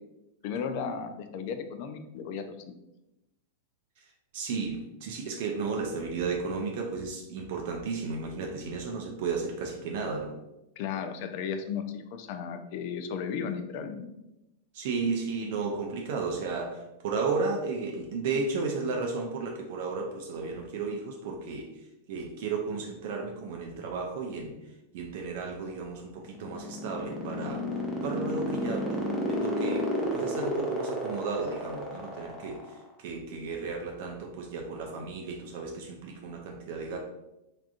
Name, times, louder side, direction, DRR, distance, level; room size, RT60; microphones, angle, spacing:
voice 1, 0.4-2.5 10.8-14.1, left 6 dB, 50° left, 8 dB, 0.3 m, -35 dB
voice 2, 4.3-10.4 14.7-21.7 22.1-24.5 24.9-27.7 28.0-37.0, right 4 dB, 55° right, 1 dB, 0.4 m, -34 dB
sound 1, 26.2-32.8, left 2 dB, 10° left, 0.7 m, -31 dB
3.4 x 2.4 x 2.4 m, 0.93 s
figure-of-eight pair, 95°, 0 cm